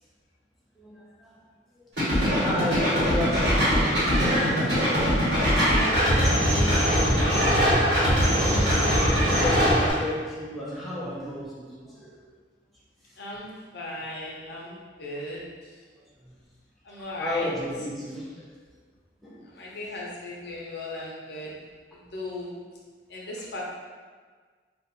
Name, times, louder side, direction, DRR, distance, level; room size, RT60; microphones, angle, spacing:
voice 1, 0.8-1.4 2.1-4.7 9.1-12.1 17.2-18.4 19.2-19.4, left 1 dB, ahead, -8 dB, 0.5 m, -33 dB
sound 1, 2.0-9.9, equal, 80° right, 1.4 m, -22 dB
Car, 3.7-4.7 5.4-6.4 7.0-8.1 8.8-9.7, right 1 dB, 60° right, 1.0 m, -31 dB
voice 2, 5.6-8.5 13.2-15.8 16.8-17.5 19.5-21.5 21.9-22.5 23.1-23.6, left 1 dB, 65° left, -4 dB, 0.6 m, -37 dB
2.5 x 2.2 x 3.8 m, 1.5 s
head